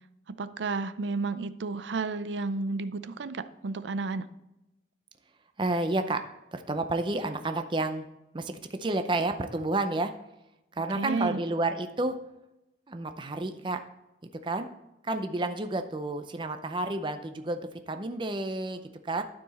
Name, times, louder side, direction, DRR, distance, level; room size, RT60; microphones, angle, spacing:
voice 1, 0.4-4.3 10.9-11.4, right 3 dB, 85° right, 13 dB, 0.5 m, -32 dB
voice 2, 5.6-6.2 6.5-8.1 8.3-10.1 10.7-12.2 12.9-13.8 14.4-14.7 15.0-19.2, right 2 dB, 25° right, 7 dB, 0.5 m, -30 dB
12.0 x 4.7 x 4.1 m, 0.91 s
head